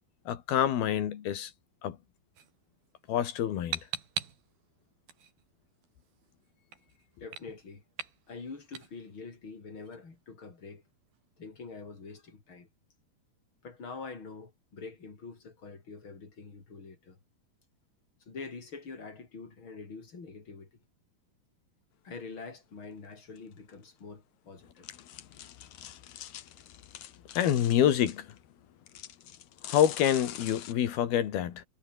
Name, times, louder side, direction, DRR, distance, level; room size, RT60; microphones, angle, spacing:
voice 1, 0.3-1.5 1.8-2.0 3.1-3.8 27.4-28.3 29.6-31.7, left 10 dB, 75° left, 3.8 m, -27 dB
sound 1, 2.4-12.2, right 7 dB, 70° right, 5.4 m, -45 dB
voice 2, 7.2-7.8 8.3-10.8 11.4-12.7 13.6-17.2 18.2-20.7 22.0-24.9, left 4 dB, 30° left, 5.0 m, -45 dB
sound 2, 23.4-23.5 23.7-23.8 24.8-28.4 28.9-30.7, left 11 dB, 60° left, 2.4 m, -45 dB
omnidirectional pair, 4.5 m